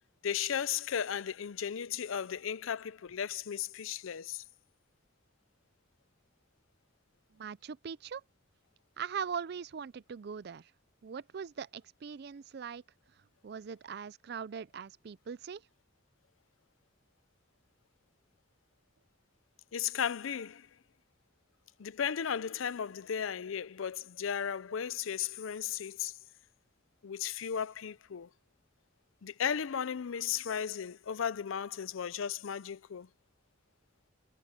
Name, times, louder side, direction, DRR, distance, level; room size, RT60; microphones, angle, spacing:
voice 1, 0.2-4.4 19.7-20.7 21.8-26.2 27.0-28.3 29.2-33.1, left 8 dB, 85° left, 0.5 m, -35 dB
voice 2, 7.3-8.2 9.0-10.7 11.0-12.8 13.4-15.6, right 6 dB, 55° right, 0.4 m, -41 dB
head